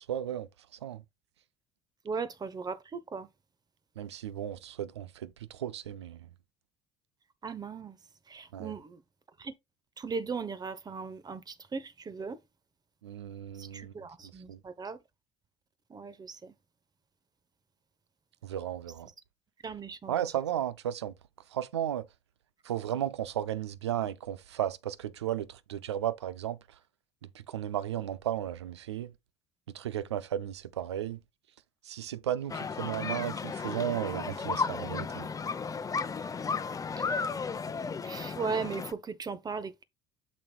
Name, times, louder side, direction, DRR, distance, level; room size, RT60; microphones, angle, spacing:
voice 1, 0.1-1.0 4.0-6.3 8.5-8.7 13.0-13.9 14.5-14.6 18.4-19.1 20.1-21.1 21.5-22.1 22.6-26.6 27.3-29.1 29.7-31.2 31.9-35.3, right 11 dB, 85° right, 0.4 m, -34 dB
voice 2, 2.0-3.3 7.4-8.0 8.3-9.0 9.4-9.5 10.0-12.4 13.6-15.0 15.9-16.5 19.6-20.1 37.0-37.1 38.0-39.8, right 5 dB, 30° right, 1.0 m, -37 dB
sound 1, 32.5-38.9, left 5 dB, 25° left, 0.8 m, -34 dB
7.4 x 6.3 x 2.3 m
hypercardioid pair, 65°, 14 cm